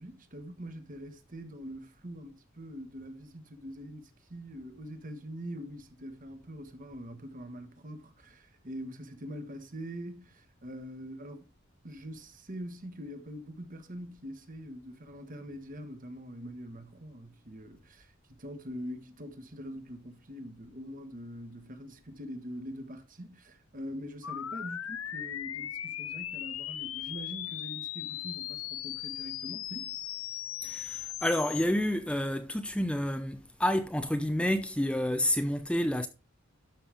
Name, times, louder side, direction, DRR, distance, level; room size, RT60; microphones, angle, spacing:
voice 1, 0.0-11.5 11.8-30.0, equal, 40° right, 1.5 m, -43 dB
sound 1, 24.2-31.6, left 11 dB, 85° left, 0.7 m, -38 dB
voice 2, 30.6-36.1, left 1 dB, 5° left, 0.6 m, -29 dB
12.5 x 5.5 x 3.4 m
head